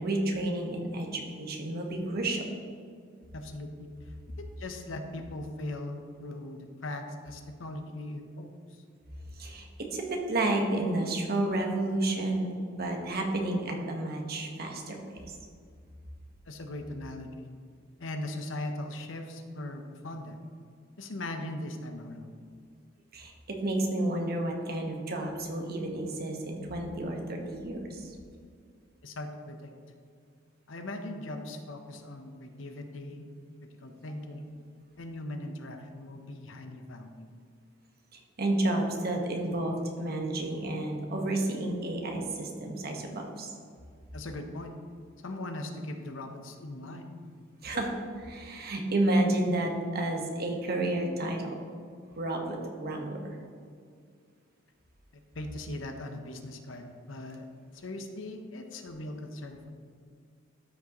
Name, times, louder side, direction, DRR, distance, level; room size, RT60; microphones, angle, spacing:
voice 1, 0.0-2.4 9.4-15.4 23.1-28.1 33.9-34.0 38.1-43.5 47.6-51.5 52.1-53.2, right 1 dB, 50° right, 2 dB, 1.3 m, -31 dB
voice 2, 3.3-8.8 16.5-17.5 18.0-20.4 21.0-22.3 29.0-29.7 30.7-33.3 33.8-34.6 35.0-37.3 44.1-44.8 45.2-47.2 55.3-57.5 57.7-59.7, left 1 dB, 70° left, 5 dB, 0.9 m, -40 dB
13.0 x 6.1 x 3.0 m, 2.1 s
head